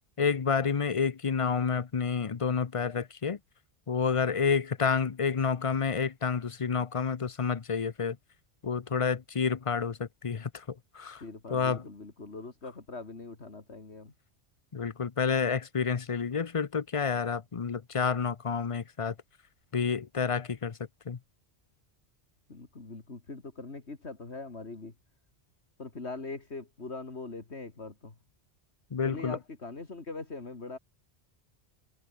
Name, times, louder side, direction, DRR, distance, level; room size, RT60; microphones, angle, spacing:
voice 1, 0.2-3.4 3.9-8.2 8.6-10.6 10.9-11.2 11.5-11.8 14.7-19.1 19.7-20.8 21.1-21.2 28.9-29.4, left 6 dB, 35° left, 0.7 m, -29 dB
voice 2, 11.2-14.1 22.5-24.9 25.8-28.1 29.0-30.8, left 3 dB, 80° left, 3.1 m, -42 dB
omnidirectional pair, 1.1 m